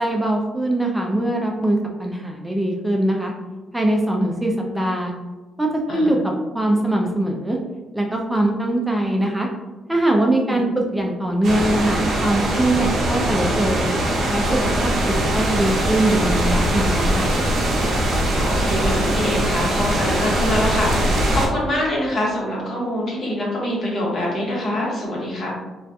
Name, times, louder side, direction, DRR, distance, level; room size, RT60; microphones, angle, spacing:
voice 1, 0.0-3.3 3.7-5.1 5.6-6.2 6.5-7.6 7.9-9.5 9.9-13.9 14.3-17.3, right 1 dB, 10° right, 0 dB, 0.3 m, -22 dB
sound 1, 11.4-21.5, right 1 dB, 65° right, 0.5 m, -21 dB
voice 2, 18.1-25.5, left 1 dB, 55° left, -4 dB, 1.0 m, -25 dB
2.3 x 2.2 x 2.6 m, 1.2 s
cardioid pair, 90°, 0 cm